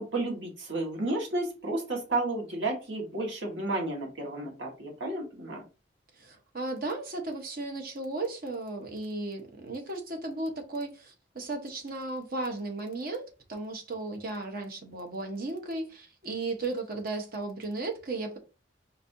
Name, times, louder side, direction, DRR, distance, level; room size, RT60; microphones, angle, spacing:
voice 1, 0.0-5.6, right 2 dB, 75° right, 1.5 m, -32 dB
voice 2, 6.2-18.4, right 2 dB, 50° right, 1.0 m, -35 dB
5.2 x 2.6 x 2.7 m
head